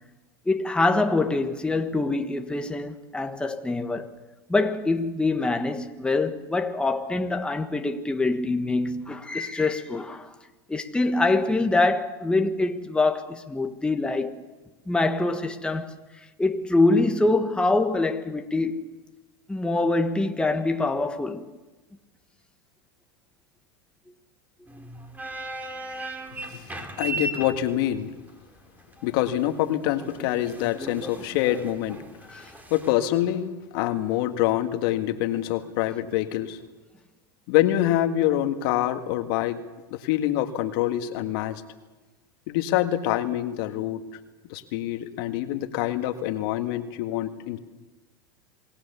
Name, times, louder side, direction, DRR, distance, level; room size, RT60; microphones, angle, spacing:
voice 1, 0.5-4.1 4.5-10.3 10.7-14.4 14.9-16.0 16.4-18.8 19.5-21.4 32.3-32.5, left 2 dB, 5° left, 1.5 m, -24 dB
sound 1, 24.7-32.9, right 2 dB, 15° right, 3.3 m, -37 dB
voice 2, 26.5-28.1 29.0-32.0 32.7-36.6 37.5-39.6 39.9-41.6 42.5-44.0 44.5-47.6, left 13 dB, 65° left, 1.8 m, -25 dB
28.0 x 19.0 x 7.0 m
hypercardioid pair, 105°, 13 cm